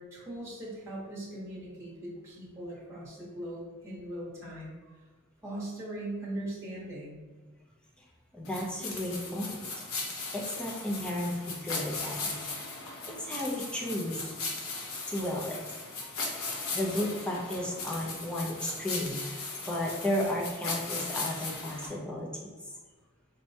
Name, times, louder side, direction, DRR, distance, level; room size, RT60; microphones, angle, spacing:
voice 1, 0.0-4.7 5.4-7.2, right 1 dB, 15° right, -7 dB, 1.0 m, -40 dB
voice 2, 8.3-9.9 10.3-12.4 13.0-14.3 15.1-15.6 16.0-16.1 16.7-22.7, left 1 dB, 5° left, -3 dB, 0.5 m, -34 dB
sound 1, 8.5-21.9, left 3 dB, 70° left, 0.7 m, -38 dB
4.3 x 2.2 x 2.7 m, 1.3 s
head